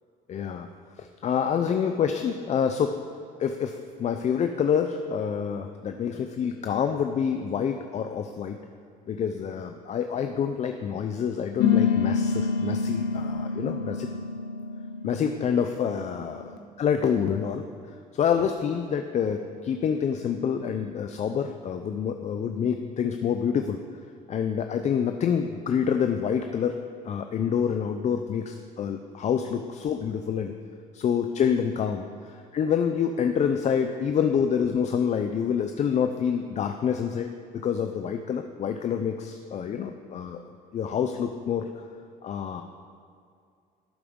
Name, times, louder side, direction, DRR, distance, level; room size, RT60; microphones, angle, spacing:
voice 1, 0.3-0.7 1.0-3.0 3.4-8.6 9.1-14.1 15.0-16.5 16.8-17.7 18.1-23.8 24.3-30.5 30.9-40.4 40.7-41.8 42.2-42.6, left 7 dB, 45° left, 6 dB, 0.5 m, -27 dB
sound 1, 11.6-16.5, left 6 dB, 80° left, 0.9 m, -27 dB
12.0 x 8.4 x 3.8 m, 2.3 s
cardioid pair, 110°, 17 cm